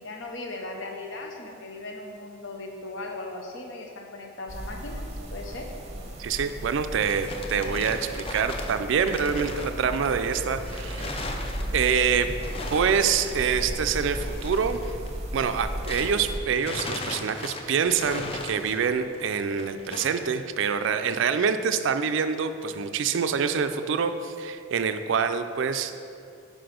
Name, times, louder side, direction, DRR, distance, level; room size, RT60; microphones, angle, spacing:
voice 1, 0.0-5.7, left 2 dB, 60° left, 2 dB, 0.7 m, -38 dB
sound 1, 4.5-16.4, equal, 30° right, 0.7 m, -35 dB
voice 2, 6.2-11.3 11.7-12.4 12.7-15.0 15.3-26.0, right 6 dB, 65° right, 9 dB, 0.3 m, -26 dB
sound 2, 7.0-16.2 16.5-20.3, left 2 dB, 25° left, 0.4 m, -39 dB
5.9 x 5.0 x 5.0 m, 2.6 s
head